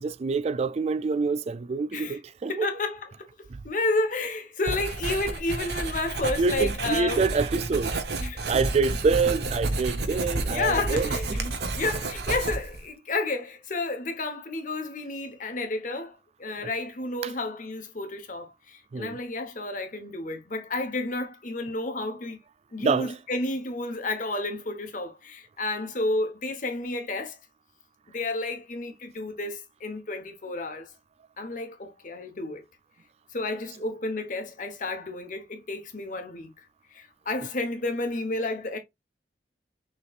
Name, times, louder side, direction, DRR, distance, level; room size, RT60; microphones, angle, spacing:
voice 1, 0.0-2.7 3.5-3.6 6.4-8.0 8.3-11.5 17.2-17.3 18.9-19.2 22.8-23.1, right 4 dB, 35° right, 0.3 m, -26 dB
voice 2, 2.4-3.3 3.6-7.2 8.2-8.4 10.5-11.4 11.8-22.4 22.7-27.4 28.1-30.9 31.4-32.6 33.3-36.5 36.9-38.8, left 2 dB, 45° left, 1.1 m, -31 dB
Writing, 4.7-12.9, right 2 dB, 65° right, 1.0 m, -30 dB
6.6 x 3.3 x 2.5 m
head